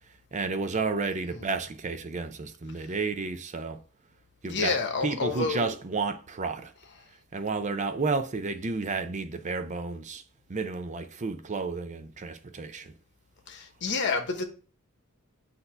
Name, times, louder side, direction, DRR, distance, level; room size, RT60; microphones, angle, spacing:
voice 1, 0.1-3.8 4.4-6.7 7.3-10.2 10.5-12.9, right 4 dB, 35° right, 0.5 m, -32 dB
voice 2, 4.4-5.7 13.5-14.4, left 4 dB, 55° left, 1.1 m, -29 dB
8.1 x 2.7 x 5.5 m
head